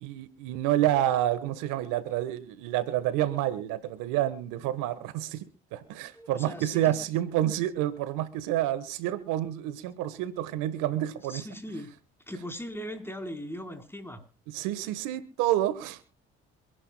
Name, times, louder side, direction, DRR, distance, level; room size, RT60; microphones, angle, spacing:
voice 1, 0.0-5.5 5.7-11.5 14.5-16.0, right 13 dB, 85° right, 15 dB, 1.4 m, -29 dB
voice 2, 6.1-7.0 11.3-11.9 12.3-14.2, equal, 5° left, 6 dB, 4.0 m, -39 dB
26.5 x 11.0 x 2.2 m, 0.35 s
supercardioid pair, 60°, 31 cm